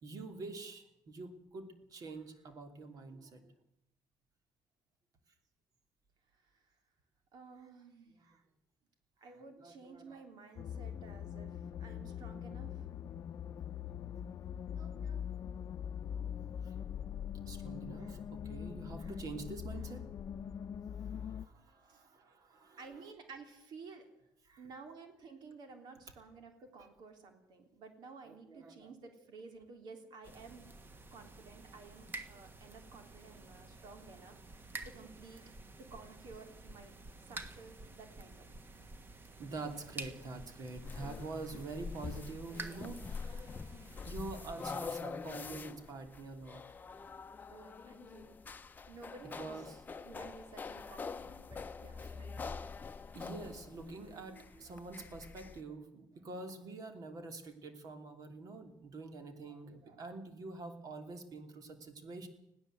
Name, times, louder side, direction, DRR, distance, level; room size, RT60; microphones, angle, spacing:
voice 1, 0.0-3.5 8.1-8.4 9.2-10.2 14.7-15.3 16.6-16.7 17.4-20.1 20.9-23.1 24.4-24.6 28.2-28.9 34.7-34.9 35.4-35.5 39.4-43.5 44.0-46.6 47.5-47.7 49.2-49.8 52.0-52.1 53.1-62.3, right 3 dB, 55° right, 7 dB, 3.1 m, -46 dB
voice 2, 7.3-8.2 9.2-12.8 21.9-22.0 22.8-24.1 24.6-30.6 31.1-34.4 34.8-35.4 35.9-36.9 37.3-38.5 47.5-48.4 48.9-49.5 50.0-52.5, right 4 dB, 70° right, 6 dB, 3.3 m, -53 dB
sound 1, 10.6-21.5, left 8 dB, 50° left, 0.7 m, -42 dB
sound 2, 30.2-44.9, right 3 dB, 30° right, 1.5 m, -50 dB
sound 3, 40.8-55.6, left 5 dB, 25° left, 0.8 m, -45 dB
20.5 x 16.0 x 7.8 m, 0.81 s
cardioid pair, 145°, 7 cm